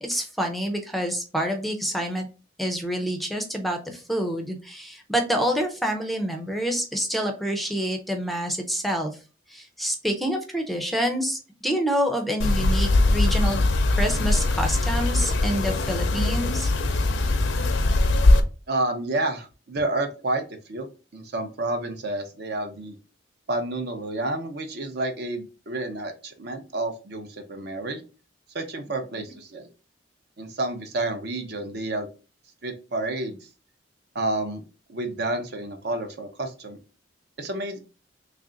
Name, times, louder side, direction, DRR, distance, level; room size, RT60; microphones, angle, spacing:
voice 1, 0.0-2.3 2.6-9.1 9.5-13.6 13.9-16.7, equal, ahead, 4 dB, 0.5 m, -27 dB
sound 1, 12.4-18.4, left 2 dB, 75° left, 0.5 m, -21 dB
voice 2, 18.7-20.9 21.1-23.0 23.5-28.0 28.5-29.7 30.4-32.1 32.6-33.4 34.1-34.6 34.9-36.8 37.4-37.8, right 2 dB, 60° right, 6 dB, 0.7 m, -30 dB
3.2 x 2.5 x 3.8 m, 0.34 s
head